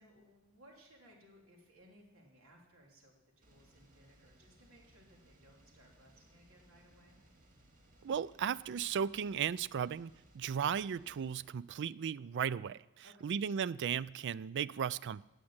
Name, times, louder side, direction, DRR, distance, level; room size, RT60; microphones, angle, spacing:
voice 1, 0.0-7.2 13.0-13.3, equal, 80° right, 3.3 m, -62 dB
sound 1, 3.4-11.5, right 1 dB, 40° right, 2.1 m, -65 dB
voice 2, 8.0-12.8 13.2-15.2, right 7 dB, 55° right, 0.4 m, -36 dB
18.0 x 6.5 x 8.7 m
head